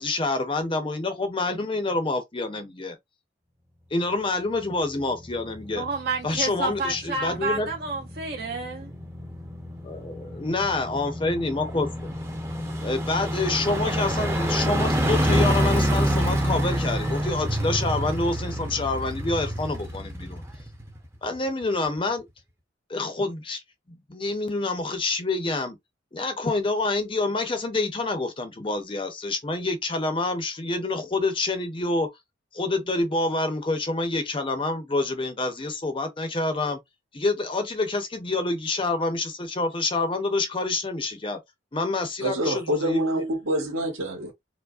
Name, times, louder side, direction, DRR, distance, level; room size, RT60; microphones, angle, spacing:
voice 1, 0.0-3.0 3.9-5.8 6.2-7.7 9.8-12.1 12.8-20.4 21.2-22.3 22.9-23.6 23.9-25.8 26.1-32.1 32.5-36.8 37.1-41.4 41.7-43.0, left 2 dB, 25° left, 0.6 m, -27 dB
sound 1, 4.7-21.3 21.6-21.7, equal, 15° right, 0.6 m, -28 dB
voice 2, 5.8-8.9, right 3 dB, 50° right, 0.6 m, -30 dB
voice 3, 42.2-44.3, right 1 dB, 85° right, 1.6 m, -26 dB
4.6 x 2.1 x 2.4 m
head